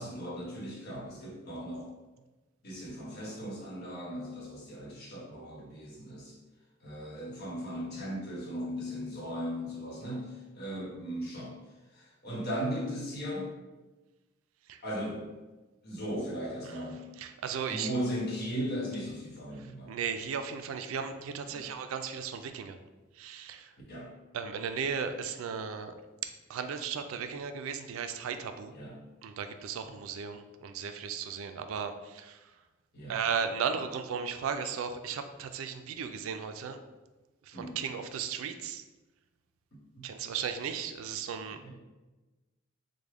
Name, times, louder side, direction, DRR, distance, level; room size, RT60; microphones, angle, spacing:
voice 1, 0.0-1.9 2.6-6.4 6.8-11.5 11.9-13.5 14.8-15.2 15.8-17.0 17.7-19.9 21.5-21.7 23.9-24.1 28.7-29.0 32.9-33.2 37.5-37.8 40.0-40.1 41.6-41.7, equal, 50° left, -4 dB, 1.0 m, -37 dB
voice 2, 17.2-17.9 19.9-22.8 23.2-23.7 24.3-25.9 26.5-28.7 29.2-32.4 33.1-36.8 37.4-38.8 40.0-41.6, right 6 dB, 85° right, 8 dB, 0.3 m, -35 dB
3.3 x 2.1 x 3.5 m, 1.2 s
head